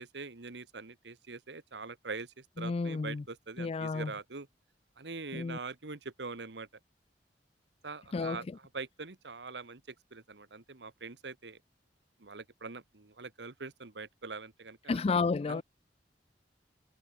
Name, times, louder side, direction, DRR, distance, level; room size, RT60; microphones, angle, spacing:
voice 1, 0.0-4.5 5.0-6.7 7.8-11.6 12.2-15.0 15.5-15.6, right 4 dB, 75° right, 1.4 m, -43 dB
voice 2, 2.6-3.2 3.6-4.1 5.3-5.6 8.1-8.4 14.9-15.6, left 4 dB, 35° left, 0.4 m, -31 dB
head